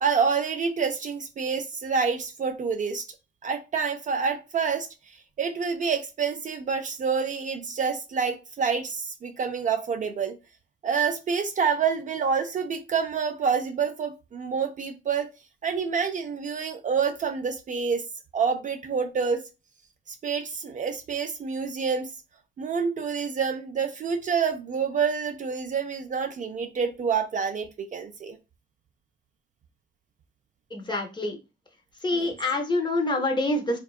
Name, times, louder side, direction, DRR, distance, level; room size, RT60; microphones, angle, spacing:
voice 1, 0.0-3.0 3.4-10.4 10.8-15.3 15.6-18.1 18.3-19.4 20.1-22.1 22.6-28.4 32.1-32.3, right 6 dB, 40° right, 0.4 m, -27 dB
voice 2, 30.7-31.4 32.0-33.8, left 2 dB, 25° left, 0.6 m, -26 dB
2.7 x 2.2 x 2.3 m
cardioid pair, 90°, 20 cm